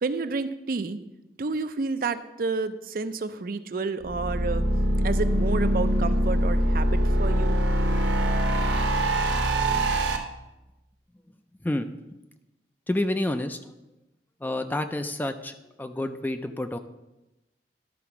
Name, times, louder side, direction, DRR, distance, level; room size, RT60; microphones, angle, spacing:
voice 1, 0.0-1.0 1.4-4.6 5.0-7.6, right 4 dB, 55° right, 11 dB, 0.5 m, -30 dB
sound 1, 4.0-10.2, right 1 dB, 90° right, 1.0 m, -23 dB
voice 2, 12.9-13.6 14.4-16.8, left 1 dB, 10° left, 8 dB, 0.4 m, -29 dB
11.5 x 4.2 x 5.9 m, 0.96 s
head